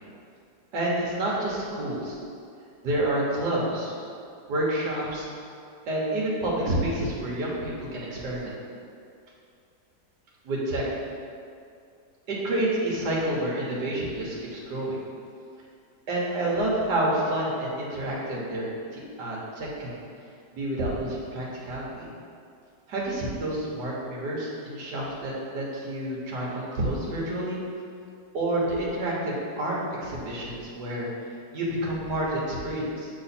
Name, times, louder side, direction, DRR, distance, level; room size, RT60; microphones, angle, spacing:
voice 1, 0.7-2.2 2.8-3.9 4.5-5.3 5.9-8.5 10.4-10.8 12.3-15.0 16.1-20.0 20.5-22.1 22.9-27.6 28.3-31.1 31.5-33.1, right 1 dB, 75° right, -4 dB, 1.7 m, -29 dB
6.9 x 3.7 x 4.2 m, 2.4 s
omnidirectional pair, 1.8 m